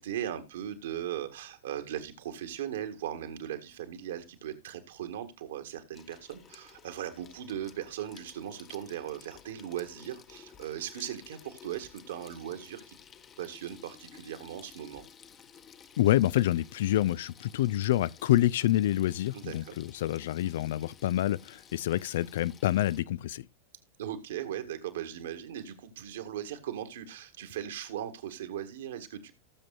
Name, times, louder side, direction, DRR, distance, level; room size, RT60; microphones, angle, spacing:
voice 1, 0.0-13.0 13.4-15.1 19.3-19.8 24.0-29.3, right 10 dB, 60° right, 1.9 m, -38 dB
Water tap faucet / Sink (filling or washing), 5.9-23.0, left 8 dB, 25° left, 1.1 m, -54 dB
voice 2, 16.0-23.5, left 14 dB, 55° left, 0.4 m, -27 dB
18.5 x 7.5 x 2.5 m
figure-of-eight pair, 90°, 0 cm